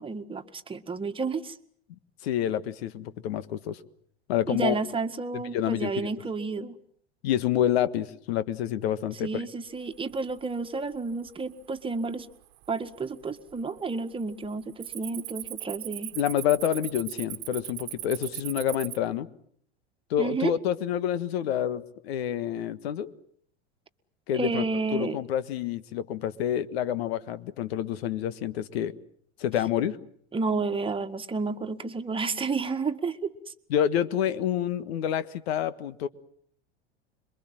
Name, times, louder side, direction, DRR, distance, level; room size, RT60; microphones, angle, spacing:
voice 1, 0.0-1.6 4.5-6.8 9.2-12.3 12.7-16.2 20.2-20.5 24.3-25.2 30.3-33.5, right 4 dB, 15° right, 6 dB, 1.8 m, -31 dB
voice 2, 2.2-3.8 4.3-4.8 5.3-6.1 7.2-9.4 16.1-19.3 20.1-23.1 24.3-24.6 24.9-28.9 29.4-30.0 33.7-36.1, left 10 dB, 65° left, 14 dB, 1.6 m, -28 dB
Cricket, 10.0-10.4 10.9-11.3 11.9-12.0 12.6-13.2 13.5-13.8 14.1-19.0, right 20 dB, 55° right, 1.4 m, -39 dB
26.5 x 23.0 x 7.6 m, 0.62 s
hypercardioid pair, 90°, 33 cm